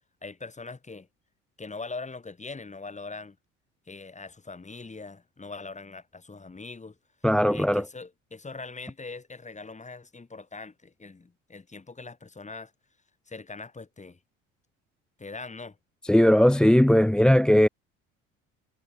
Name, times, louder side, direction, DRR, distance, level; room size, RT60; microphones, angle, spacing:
voice 1, 0.2-1.1 1.6-3.4 3.9-7.0 7.5-12.7 13.3-14.2 15.2-15.8, left 3 dB, 20° left, 7.5 m, -41 dB
voice 2, 7.2-7.8 16.0-17.7, equal, ahead, 0.7 m, -19 dB
figure-of-eight pair, 60°, 38 cm